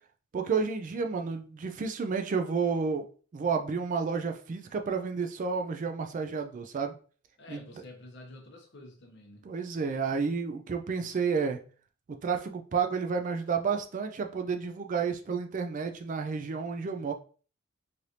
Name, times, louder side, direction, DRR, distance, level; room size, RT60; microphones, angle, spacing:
voice 1, 0.3-6.9 7.5-7.6 9.4-11.6 12.1-17.1, right 5 dB, 40° right, 0.3 m, -31 dB
voice 2, 7.4-9.4, left 2 dB, 55° left, 0.8 m, -49 dB
3.2 x 2.5 x 2.8 m
head